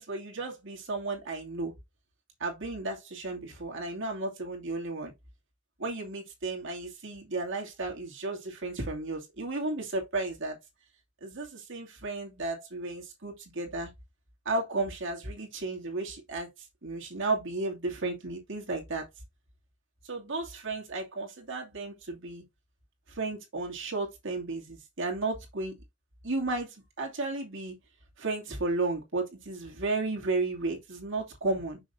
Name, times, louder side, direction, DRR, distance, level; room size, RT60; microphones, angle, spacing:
voice 1, 0.0-1.7 2.4-5.1 5.8-10.6 11.2-13.9 14.4-19.1 20.0-22.4 23.1-25.7 26.2-27.8 28.2-31.8, right 2 dB, 65° right, 2.6 m, -33 dB
6.3 x 6.2 x 2.6 m
head